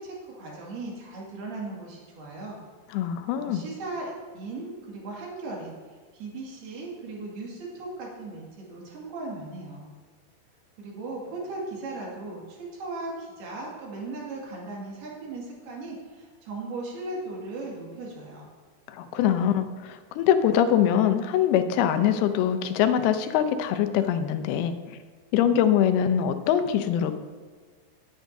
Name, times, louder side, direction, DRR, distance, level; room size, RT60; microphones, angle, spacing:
voice 1, 0.0-2.6 3.3-5.7 6.1-9.9 10.8-18.5, right 2 dB, 85° right, -3 dB, 4.2 m, -37 dB
voice 2, 2.9-3.7 18.9-25.0 25.3-27.1, left 9 dB, 85° left, 9 dB, 2.7 m, -23 dB
18.0 x 9.1 x 2.7 m, 1.5 s
omnidirectional pair, 4.4 m